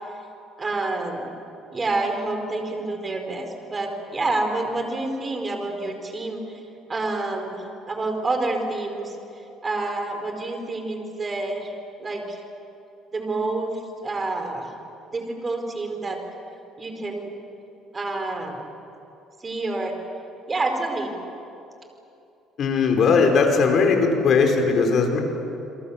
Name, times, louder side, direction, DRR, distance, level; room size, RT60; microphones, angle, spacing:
voice 1, 0.6-1.3 1.7-6.6 6.9-9.2 9.6-11.7 12.0-12.4 13.1-14.7 15.1-16.2 16.8-17.4 17.9-18.6 19.4-19.9 20.5-21.1, right 2 dB, 25° right, 4 dB, 4.6 m, -28 dB
voice 2, 22.6-25.2, left 4 dB, 50° left, 3 dB, 4.9 m, -19 dB
29.0 x 22.5 x 7.4 m, 2.8 s
cardioid pair, 110°, 0 cm